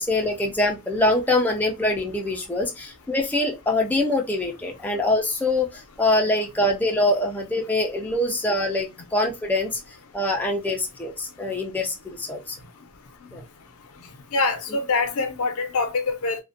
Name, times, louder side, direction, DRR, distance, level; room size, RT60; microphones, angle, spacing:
voice 1, 0.0-12.6 13.3-13.4, left 1 dB, 10° left, 0.4 m, -24 dB
voice 2, 14.3-16.4, left 3 dB, 75° left, 0.5 m, -24 dB
2.4 x 2.1 x 2.4 m
head